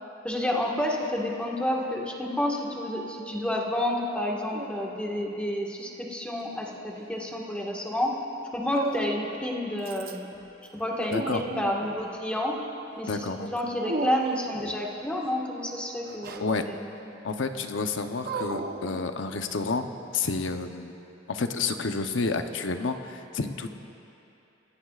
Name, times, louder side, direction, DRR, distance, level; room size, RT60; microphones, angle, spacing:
voice 1, 0.2-8.2 8.5-10.3 10.7-12.6 13.0-16.8, left 1 dB, 5° left, -2 dB, 1.6 m, -30 dB
Dog, 4.5-5.3 6.4-7.3 8.7-9.4 9.8-10.4 10.7-12.1 13.8-14.8 16.0-16.5 18.2-19.6, right 2 dB, 55° right, 0.8 m, -35 dB
voice 2, 11.1-11.4 13.1-13.5 16.4-16.6 17.2-20.9 21.3-23.8, left 4 dB, 90° left, 7 dB, 0.8 m, -30 dB
28.5 x 16.5 x 2.5 m, 2.9 s
head